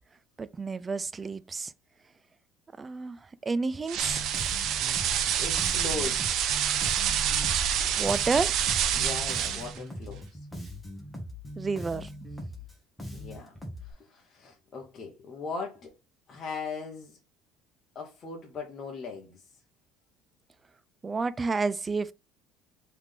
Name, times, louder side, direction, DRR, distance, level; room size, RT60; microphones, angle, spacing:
voice 1, 0.4-1.7 2.8-4.3 8.0-8.6 11.6-12.1 21.0-22.1, right 4 dB, 20° right, 0.3 m, -30 dB
sound 1, 3.9-9.8, right 9 dB, 55° right, 0.6 m, -27 dB
Bass guitar, 4.0-13.9, left 1 dB, 5° left, 1.2 m, -41 dB
voice 2, 5.4-6.4 8.9-10.4 13.1-13.5 13.8-15.9 16.3-17.2 17.9-19.4, left 4 dB, 30° left, 1.0 m, -39 dB
3.6 x 3.3 x 3.6 m
cardioid pair, 135°, 0 cm